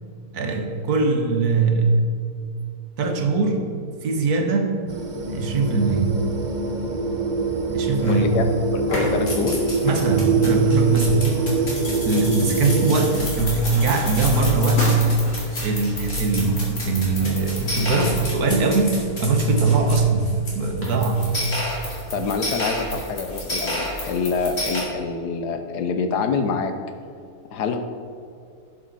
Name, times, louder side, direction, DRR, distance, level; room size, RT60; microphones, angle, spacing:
voice 1, 0.3-2.0 3.0-3.7 4.0-4.8 5.3-6.2 7.7-8.3 9.8-11.3 11.8-15.0 15.6-21.4, right 3 dB, 70° right, 3 dB, 1.6 m, -21 dB
sound 1, 4.9-13.2, right 4 dB, 45° right, 0.6 m, -24 dB
sound 2, 8.0-8.5 8.8-24.8, left 1 dB, 50° left, 2.7 m, -30 dB
voice 2, 8.1-9.6 12.4-12.6 22.1-26.7 27.5-27.9, left 5 dB, 85° left, 7 dB, 1.4 m, -26 dB
11.5 x 7.5 x 4.1 m, 2.4 s
omnidirectional pair, 1.7 m